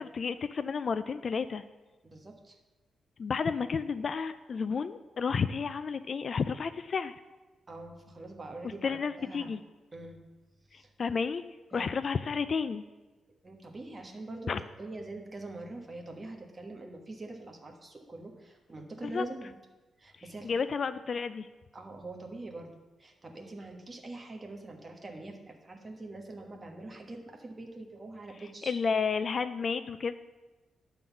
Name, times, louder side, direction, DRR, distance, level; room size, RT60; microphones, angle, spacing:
voice 1, 0.0-1.6 3.2-7.1 8.8-9.6 10.7-11.4 11.7-12.8 14.5-14.6 19.0-19.2 20.4-21.5 28.6-30.1, left 5 dB, 45° left, 12 dB, 0.3 m, -31 dB
voice 2, 2.0-2.6 7.7-9.5 9.9-10.2 10.7-10.9 11.7-11.9 13.4-14.5 14.8-19.5 20.0-20.5 21.7-22.7 23.0-28.7, right 2 dB, 25° right, 2 dB, 1.2 m, -44 dB
11.0 x 3.9 x 7.1 m, 1.2 s
wide cardioid pair, 130°, 0 cm